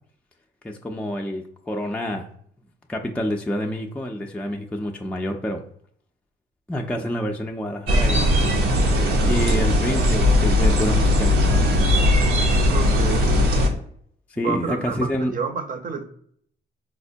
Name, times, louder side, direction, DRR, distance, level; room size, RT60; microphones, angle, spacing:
voice 1, 0.6-2.3 2.9-5.6 6.7-8.2 9.2-12.1 14.3-15.3, left 1 dB, 5° left, 2 dB, 0.4 m, -28 dB
sound 1, 7.9-13.7, left 1 dB, 90° right, 0.8 m, -18 dB
voice 2, 12.7-13.4 14.4-16.1, right 5 dB, 45° right, 6 dB, 0.6 m, -29 dB
4.2 x 2.1 x 2.6 m, 0.63 s
cardioid pair, 90°, 20 cm